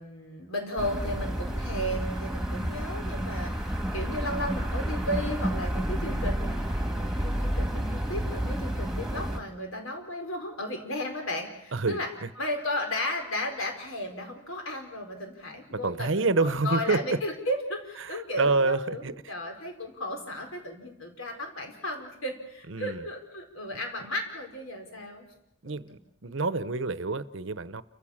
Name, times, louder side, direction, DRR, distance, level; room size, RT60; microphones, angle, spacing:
voice 1, 0.0-12.1 12.4-25.3, left 1 dB, 80° left, 4.8 m, -34 dB
sound 1, 0.8-9.4, equal, ahead, 1.9 m, -30 dB
voice 2, 11.7-12.3 15.7-17.0 18.0-19.3 22.7-23.0 25.6-27.8, right 3 dB, 60° right, 0.9 m, -28 dB
29.5 x 15.0 x 7.4 m
head